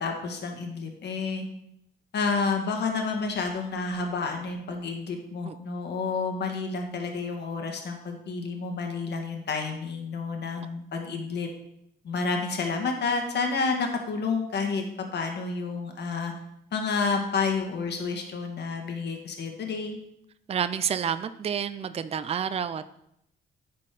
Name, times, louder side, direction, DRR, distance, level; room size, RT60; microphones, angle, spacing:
voice 1, 0.0-1.4 2.1-11.5 12.0-16.3 16.7-20.0, left 4 dB, 60° left, 3 dB, 1.7 m, -30 dB
voice 2, 20.5-22.9, right 8 dB, 30° right, 12 dB, 0.4 m, -29 dB
10.5 x 4.3 x 4.9 m, 0.77 s
cardioid pair, 90°, 20 cm